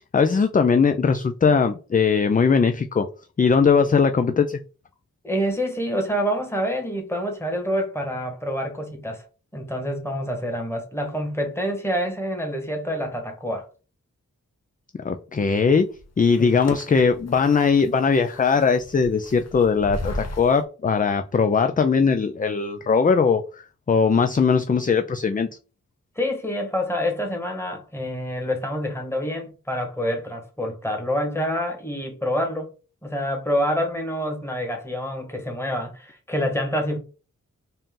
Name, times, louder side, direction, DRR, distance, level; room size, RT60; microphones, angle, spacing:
voice 1, 0.1-3.1 3.4-4.6 15.0-15.9 16.2-23.6 23.9-25.5, left 5 dB, 25° left, 0.4 m, -20 dB
voice 2, 5.2-9.2 9.5-13.7 16.4-16.7 26.1-32.7 33.0-37.0, equal, 10° left, 1.4 m, -27 dB
sound 1, 15.7-20.6, left 2 dB, 55° left, 1.0 m, -36 dB
4.2 x 2.5 x 3.7 m
cardioid pair, 60°, 32 cm